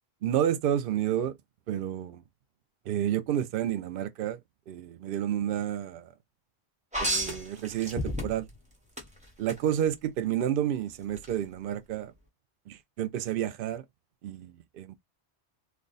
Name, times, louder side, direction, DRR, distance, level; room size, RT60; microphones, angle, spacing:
voice 1, 0.2-1.3 1.7-2.2 2.9-4.4 4.7-6.1 7.0-8.5 9.4-12.1 12.7-13.8 14.2-15.0, right 10 dB, 65° right, 0.7 m, -30 dB
sound 1, 6.9-8.5 9.0-9.6 11.2-11.3, equal, 5° right, 0.9 m, -31 dB
3.3 x 2.1 x 3.9 m
omnidirectional pair, 1.1 m